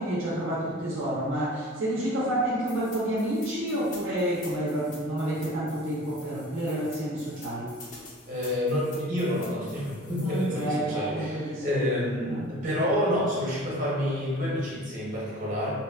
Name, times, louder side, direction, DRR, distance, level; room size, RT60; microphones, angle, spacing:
voice 1, 0.0-7.7 10.2-11.9 12.3-12.4, right 1 dB, 70° right, -6 dB, 0.5 m, -29 dB
sound 1, 2.7-10.7, left 3 dB, 40° left, 0.5 m, -48 dB
voice 2, 8.3-15.7, left 1 dB, 40° right, -7 dB, 0.8 m, -28 dB
2.7 x 2.2 x 2.2 m, 1.6 s
head